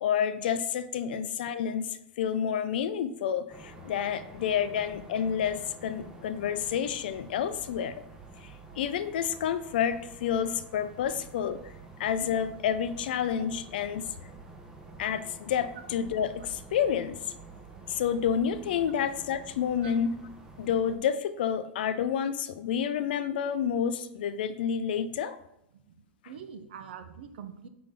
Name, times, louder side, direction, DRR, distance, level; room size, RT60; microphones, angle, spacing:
voice 1, 0.0-7.9 8.4-11.7 12.0-14.1 15.0-17.2 17.9-20.2 20.6-25.4, left 8 dB, 60° left, 12 dB, 0.4 m, -29 dB
sound 1, 3.5-21.0, right 3 dB, 10° right, 0.7 m, -49 dB
voice 2, 26.3-27.7, right 7 dB, 70° right, 9 dB, 0.7 m, -43 dB
5.1 x 3.8 x 5.6 m, 0.81 s
supercardioid pair, 180°, 6 cm